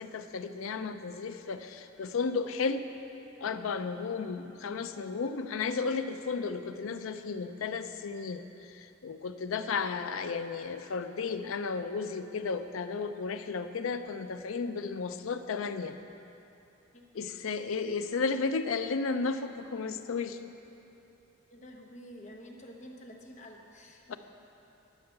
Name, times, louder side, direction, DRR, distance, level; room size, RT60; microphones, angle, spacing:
voice 1, 0.0-2.9 3.4-16.0 17.1-20.4 24.1-24.2, left 4 dB, 85° left, 10 dB, 0.5 m, -33 dB
voice 2, 16.9-17.3 21.5-24.2, equal, 35° left, 1 dB, 0.9 m, -49 dB
11.5 x 5.5 x 6.8 m, 3.0 s
head